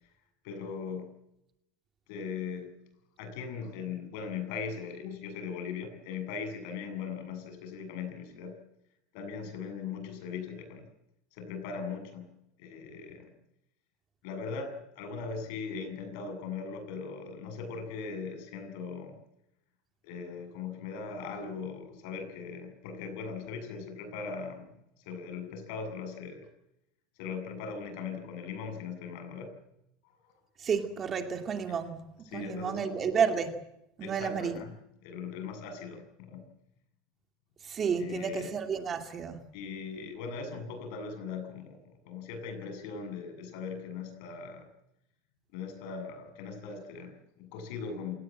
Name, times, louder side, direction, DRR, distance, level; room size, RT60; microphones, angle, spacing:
voice 1, 0.4-1.2 2.1-2.7 3.2-8.6 9.1-10.9 11.3-13.3 14.2-19.2 20.0-24.7 25.0-26.5 27.2-29.6 31.7-31.8 32.2-33.1 34.0-34.7 35.0-36.4 38.0-38.5 39.5-44.7 45.5-48.2, left 5 dB, 65° left, 7.7 m, -39 dB
voice 2, 30.6-32.1 32.3-33.6 34.0-34.5 37.6-39.4, right 6 dB, 25° right, 2.5 m, -31 dB
27.5 x 19.0 x 7.6 m
supercardioid pair, 145°, 0 cm